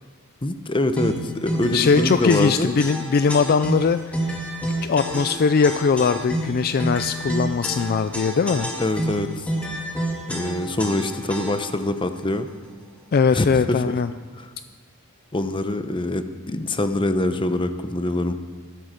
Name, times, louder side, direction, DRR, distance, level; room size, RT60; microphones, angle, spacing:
voice 1, 0.4-2.7 8.8-9.5 10.3-12.5 13.3-14.0 14.4-14.5 15.3-18.3, left 1 dB, 25° left, 9 dB, 0.8 m, -24 dB
sound 1, 1.0-11.8, equal, 5° left, 2.4 m, -29 dB
voice 2, 1.7-4.3 4.6-8.7 13.1-14.1, left 5 dB, 45° left, 11 dB, 0.4 m, -20 dB
19.0 x 12.5 x 5.1 m, 1.5 s
head